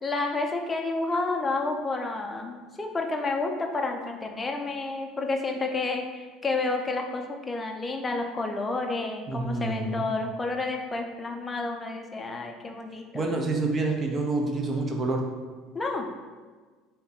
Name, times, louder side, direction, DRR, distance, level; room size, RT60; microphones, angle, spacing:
voice 1, 0.0-13.3 15.7-16.1, left 3 dB, 20° left, 3 dB, 0.5 m, -30 dB
voice 2, 9.3-10.1 13.1-15.2, right 2 dB, 30° right, 2 dB, 0.7 m, -27 dB
3.5 x 2.7 x 4.3 m, 1.4 s
supercardioid pair, 110°, 0 cm